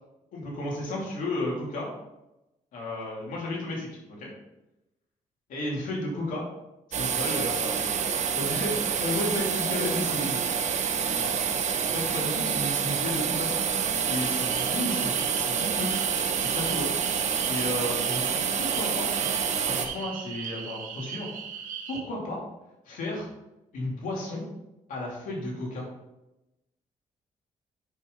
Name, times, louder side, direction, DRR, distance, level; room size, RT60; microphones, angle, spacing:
voice 1, 0.3-1.9 2.7-4.3 5.5-6.4 6.9-10.4 11.1-11.3 11.8-13.5 14.1-15.9 16.4-16.9 17.5-19.1 19.6-21.3 21.9-22.4 22.9-23.3 23.7-24.4 24.9-25.9, left 1 dB, 80° left, -3 dB, 2.8 m, -33 dB
sound 1, 6.9-19.9, right 7 dB, 60° right, 1.0 m, -27 dB
sound 2, 14.0-22.0, right 7 dB, 80° right, 1.2 m, -39 dB
9.1 x 5.6 x 3.9 m, 0.94 s
cardioid pair, 80°, 14 cm